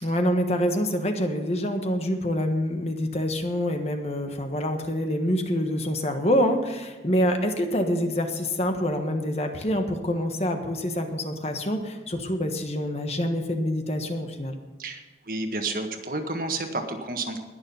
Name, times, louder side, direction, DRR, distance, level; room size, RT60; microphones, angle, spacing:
voice 1, 0.0-14.6, equal, 35° left, 5 dB, 1.3 m, -26 dB
voice 2, 15.3-17.4, right 2 dB, 50° right, 5 dB, 1.6 m, -30 dB
20.5 x 7.0 x 5.6 m, 1.2 s
head